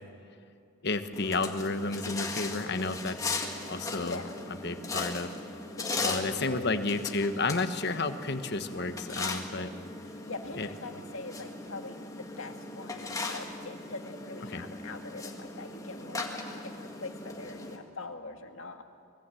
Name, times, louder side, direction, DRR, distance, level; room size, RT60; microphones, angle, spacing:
voice 1, 0.8-4.2 4.6-5.3 6.0-9.7 10.6-10.7 14.5-14.6, left 3 dB, 50° left, 8 dB, 1.2 m, -31 dB
sound 1, 1.1-17.8, left 3 dB, 15° left, 1.9 m, -38 dB
voice 2, 4.0-4.6 5.8-6.8 10.3-18.8, left 3 dB, 65° left, 5 dB, 1.9 m, -43 dB
25.0 x 21.5 x 7.8 m, 2.6 s
head